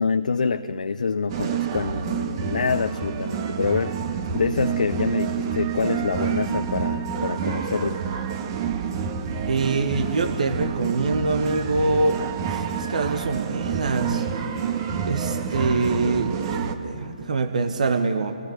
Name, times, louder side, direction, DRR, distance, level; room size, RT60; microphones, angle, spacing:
voice 1, 0.0-4.0 4.3-8.0, left 5 dB, 70° left, 8 dB, 0.8 m, -26 dB
sound 1, 1.3-16.8, right 7 dB, 35° right, 1.7 m, -28 dB
voice 2, 9.5-12.2 12.5-14.3 15.0-18.3, right 3 dB, 60° right, 6 dB, 1.7 m, -24 dB
29.0 x 20.0 x 8.3 m, 2.5 s
figure-of-eight pair, 140°, 4 cm